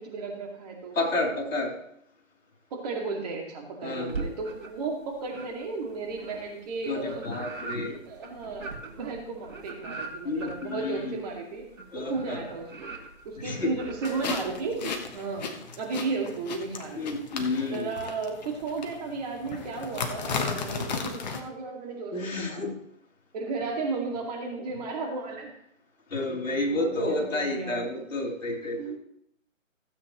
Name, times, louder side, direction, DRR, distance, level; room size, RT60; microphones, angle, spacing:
voice 1, 0.0-1.0 2.7-7.2 7.8-11.6 11.9-12.7 13.2-17.0 17.6-22.6 23.3-25.5 26.2-28.1 28.8-29.0, right 4 dB, 30° right, 1 dB, 2.3 m, -34 dB
voice 2, 1.0-1.7 3.8-4.4 6.9-8.0 10.2-11.1 11.9-12.5 13.4-13.7 17.0-17.9 22.1-22.7 26.1-29.0, left 2 dB, 75° left, 1 dB, 3.4 m, -30 dB
sound 1, 4.1-4.9 5.3-15.1, right 4 dB, 70° right, 2.6 m, -41 dB
sound 2, 14.0-21.4, left 5 dB, 35° left, 1.1 m, -35 dB
16.0 x 8.2 x 3.1 m, 0.72 s
hypercardioid pair, 155°, 40 cm